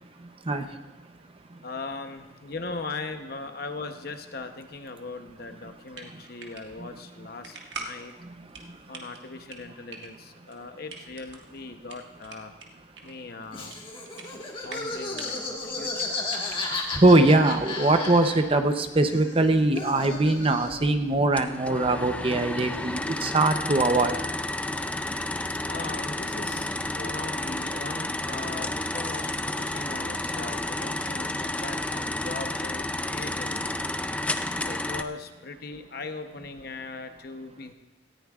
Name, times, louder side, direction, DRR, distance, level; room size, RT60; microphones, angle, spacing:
voice 1, 0.2-1.6 6.1-6.2 6.8-7.3 8.0-9.0 13.0-13.1 14.2-14.4 15.7-15.8 16.4-24.3 26.5-26.6 34.5-34.6, right 2 dB, 30° right, 0.7 m, -23 dB
voice 2, 1.6-8.1 8.9-12.5 13.0-13.8 14.6-16.2 25.7-33.8 34.6-37.7, left 3 dB, 55° left, 0.8 m, -39 dB
sound 1, 5.6-18.6, right 4 dB, 75° right, 1.6 m, -46 dB
Laughter, 13.5-18.7 19.0-20.9, left 3 dB, 30° left, 1.6 m, -34 dB
sound 2, 21.4-35.0, left 1 dB, 5° left, 0.4 m, -31 dB
18.0 x 14.0 x 2.4 m
head